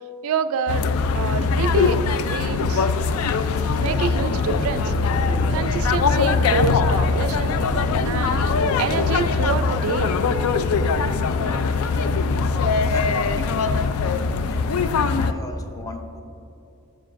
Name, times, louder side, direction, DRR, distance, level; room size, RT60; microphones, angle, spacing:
voice 1, 0.2-0.8 1.1-2.9 3.8-4.9 5.5-7.6 8.0-8.5 8.8-10.2, right 6 dB, 75° right, 11 dB, 0.3 m, -27 dB
sound 1, 0.7-15.3, left 4 dB, 80° left, 0.4 m, -21 dB
sound 2, 1.4-9.7, equal, 60° left, 1.1 m, -33 dB
voice 2, 12.8-13.7 14.5-14.7 15.2-16.2, left 3 dB, 15° left, 4 dB, 0.5 m, -37 dB
9.9 x 6.8 x 2.5 m, 2.9 s
head